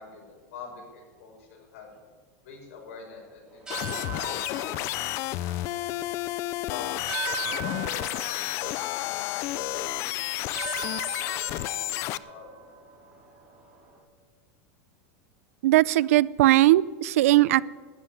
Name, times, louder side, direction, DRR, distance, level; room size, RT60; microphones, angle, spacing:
voice 1, 0.0-1.9 2.4-3.7 4.1-5.9 6.7-6.9 7.5-12.7, left 5 dB, 75° left, 0 dB, 6.1 m, -45 dB
sound 1, 3.5-14.0, right 7 dB, 10° right, 4.4 m, -41 dB
sound 2, 3.7-12.2, left 16 dB, 35° left, 0.4 m, -31 dB
voice 2, 15.6-17.6, right 16 dB, 70° right, 21 dB, 0.4 m, -19 dB
12.5 x 9.7 x 9.5 m, 1.5 s
supercardioid pair, 165°, 8 cm